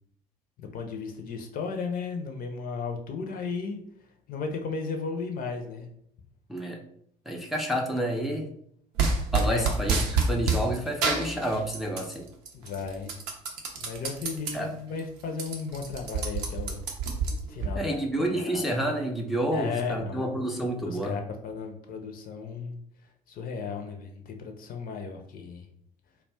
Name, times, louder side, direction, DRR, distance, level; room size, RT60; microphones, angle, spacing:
voice 1, 0.6-3.8 4.3-5.9 9.5-9.7 12.5-13.2 13.8-16.8 17.5-18.1 18.3-18.8 19.5-20.3 20.8-22.8 23.3-25.7, left 5 dB, 45° left, 4 dB, 0.5 m, -35 dB
voice 2, 6.5-6.8 7.3-8.5 9.3-12.3 14.5-14.7 17.8-21.2, right 1 dB, ahead, 1 dB, 0.4 m, -29 dB
sound 1, 9.0-10.6 11.0-12.1 12.5-14.5 15.0-15.1 15.3-17.7, right 4 dB, 75° right, 0.5 m, -27 dB
2.3 x 2.1 x 3.4 m, 0.68 s
figure-of-eight pair, 50°, 20 cm